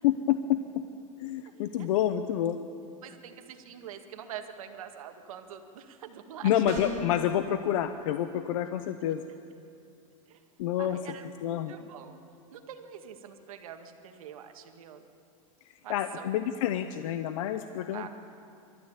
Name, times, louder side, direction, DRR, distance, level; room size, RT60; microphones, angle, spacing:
voice 1, 0.0-0.8 1.2-2.6 6.4-9.2 10.6-11.0 11.4-11.7 15.9-18.1, left 11 dB, 70° left, 9 dB, 0.9 m, -28 dB
voice 2, 1.5-1.9 3.0-6.6 9.2-9.3 10.3-10.5 10.8-12.2 12.5-15.0 15.8-16.3 17.9-18.1, right 9 dB, 85° right, 6 dB, 1.9 m, -45 dB
sound 1, 6.7-7.2, left 1 dB, 45° right, 4.4 m, -36 dB
25.0 x 13.5 x 8.3 m, 2.5 s
supercardioid pair, 140°, 18 cm